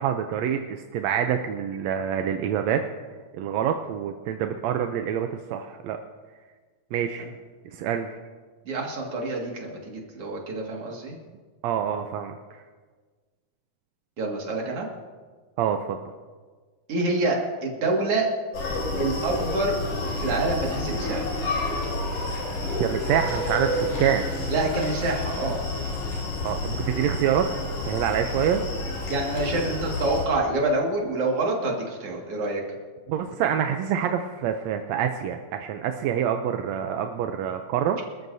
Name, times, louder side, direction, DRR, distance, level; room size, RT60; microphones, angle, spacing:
voice 1, 0.0-2.8 3.3-6.0 6.9-7.3 7.6-8.1 11.6-12.6 15.6-16.0 22.8-24.2 26.4-27.5 27.8-28.6 33.1-38.0, right 9 dB, 75° right, 5 dB, 1.7 m, -26 dB
voice 2, 8.6-11.2 14.2-14.9 16.9-18.3 19.0-19.8 20.2-21.3 24.5-25.6 29.1-32.6, right 2 dB, 50° right, -1 dB, 2.9 m, -27 dB
Screaming, 18.5-30.3, left 2 dB, 80° left, 4.9 m, -29 dB
25.5 x 13.5 x 2.7 m, 1.5 s
omnidirectional pair, 3.6 m